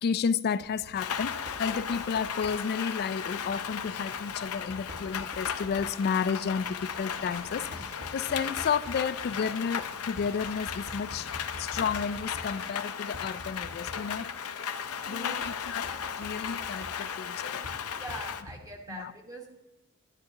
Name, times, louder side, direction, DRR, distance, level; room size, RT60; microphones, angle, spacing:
voice 1, 0.0-14.3 15.1-17.7 18.9-19.1, left 6 dB, 45° left, 0.3 m, -32 dB
Knock, 0.6-19.0, left 1 dB, 40° right, 1.4 m, -49 dB
Rain, 0.9-18.4, left 7 dB, 75° left, 0.7 m, -36 dB
sound 1, 6.3-12.6, right 1 dB, 70° right, 2.5 m, -53 dB
voice 2, 15.0-15.7 17.9-19.6, right 1 dB, 15° right, 1.4 m, -43 dB
11.5 x 10.5 x 2.8 m
head